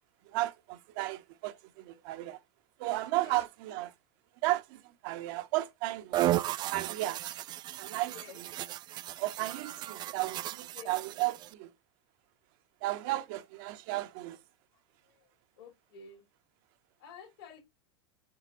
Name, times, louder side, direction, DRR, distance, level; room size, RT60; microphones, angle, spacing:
voice 1, 0.3-1.5 1.9-2.4 2.8-3.9 4.4-6.2 6.7-7.2 7.8-8.1 9.2-11.7 12.8-14.4, right 17 dB, 50° right, 0.8 m, -34 dB
voice 2, 3.1-3.5 8.1-8.4 10.7-11.0 15.1-15.3 15.6-16.2 17.0-17.6, left 6 dB, 65° left, 3.4 m, -50 dB
sound 1, 6.1-11.5, right 14 dB, 30° right, 0.4 m, -35 dB
7.5 x 5.0 x 2.6 m
hypercardioid pair, 95°, 14 cm